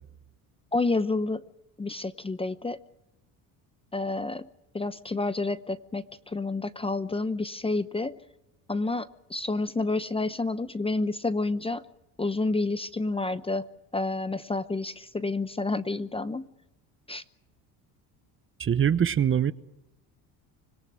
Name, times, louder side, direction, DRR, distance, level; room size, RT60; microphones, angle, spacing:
voice 1, 0.7-1.4 1.8-2.8 3.9-4.5 4.7-8.2 8.7-11.8 12.2-13.7 13.9-16.5 17.1-17.2, left 3 dB, 15° left, 0.8 m, -29 dB
voice 2, 18.6-19.5, right 8 dB, 30° right, 1.0 m, -23 dB
25.5 x 18.0 x 7.6 m
cardioid pair, 105°, 40 cm